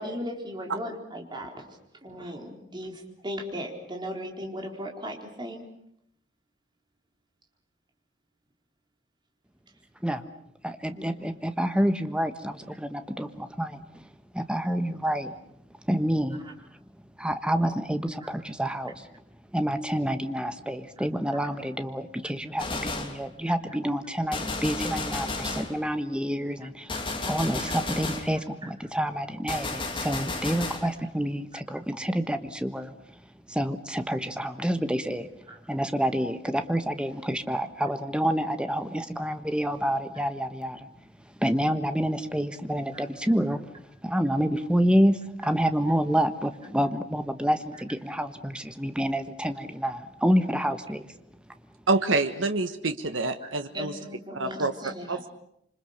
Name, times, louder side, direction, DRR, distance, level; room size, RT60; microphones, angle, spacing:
voice 1, 0.0-1.6 2.0-5.6 10.9-11.1 21.0-21.1 23.5-23.6 26.6-26.7 27.6-27.7 35.5-35.6 42.9-43.1 45.4-45.5 53.7-55.3, equal, 25° right, 2 dB, 4.2 m, -37 dB
voice 2, 10.6-14.1 14.3-15.3 15.9-16.4 17.2-19.1 19.5-33.0 33.5-35.3 35.7-40.9 41.4-43.6 44.0-51.1, equal, 5° right, 9 dB, 1.3 m, -28 dB
Gunshot gunfire, 22.6-23.2 24.3-25.8 26.9-28.3 29.5-30.9, left 3 dB, 25° left, 2.8 m, -32 dB
voice 3, 51.9-53.9 54.3-54.7 55.1-55.3, right 3 dB, 85° right, 8 dB, 1.4 m, -26 dB
27.0 x 25.5 x 6.7 m, 0.72 s
head